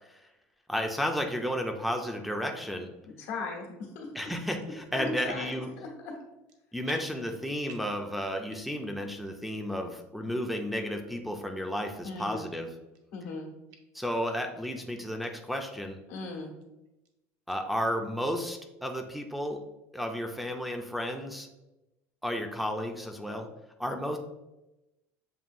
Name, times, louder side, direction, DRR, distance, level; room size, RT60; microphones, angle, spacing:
voice 1, 0.7-2.9 4.2-5.7 6.7-12.7 13.9-16.0 17.5-19.6 19.9-21.5 22.2-23.5 23.8-24.2, equal, ahead, 2 dB, 0.4 m, -33 dB
voice 2, 3.2-4.1 4.9-6.1 12.0-12.5 13.1-13.5 16.1-16.5, left 3 dB, 85° left, 0 dB, 1.3 m, -38 dB
sound 1, 4.5-4.7 5.3-5.8 6.1-6.6 6.8-8.0 8.4-8.9 9.3-9.4 10.0-10.1 10.7-10.8 11.5-11.7 12.0-12.1 12.6-13.3 13.7-13.8 14.3-14.4 14.6-15.3 15.7-15.8 16.1-16.2 16.6-17.1 17.5-17.6, right 3 dB, 55° right, 0.7 m, -51 dB
7.1 x 2.6 x 2.5 m, 0.97 s
supercardioid pair, 120°, 7 cm